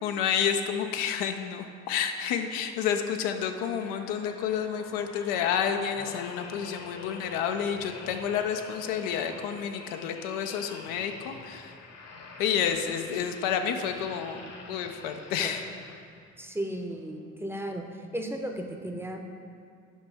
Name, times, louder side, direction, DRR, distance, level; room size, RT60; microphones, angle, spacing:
voice 1, 0.0-11.8 12.4-15.6, left 8 dB, 75° left, 6 dB, 0.5 m, -30 dB
sound 1, 2.8-16.4 16.9-17.1, left 3 dB, 45° left, 0.9 m, -46 dB
voice 2, 16.4-17.8 18.1-19.2, right 1 dB, 5° right, 3 dB, 0.7 m, -34 dB
7.3 x 5.1 x 3.4 m, 2.3 s
hypercardioid pair, 50°, 37 cm